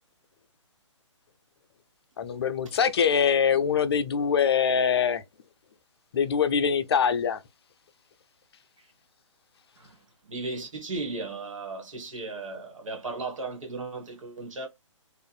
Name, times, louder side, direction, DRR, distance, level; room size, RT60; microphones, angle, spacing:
voice 1, 2.2-5.2 6.1-7.4, left 7 dB, 55° left, 0.4 m, -23 dB
voice 2, 9.8-14.7, right 3 dB, 80° right, 1.4 m, -36 dB
2.6 x 2.4 x 2.3 m
hypercardioid pair, 150°, 16 cm